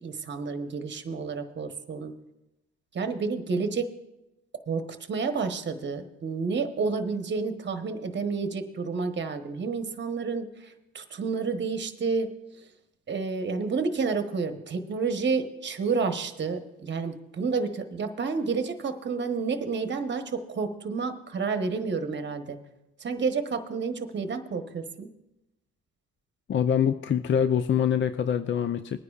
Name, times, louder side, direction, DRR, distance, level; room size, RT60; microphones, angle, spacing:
voice 1, 0.0-2.1 2.9-3.9 4.7-12.3 13.1-22.6 23.0-25.1, right 4 dB, 35° right, 7 dB, 1.1 m, -30 dB
voice 2, 26.5-29.0, left 8 dB, 40° left, 11 dB, 0.5 m, -24 dB
21.0 x 9.6 x 2.4 m, 0.96 s
cardioid pair, 90°, 30 cm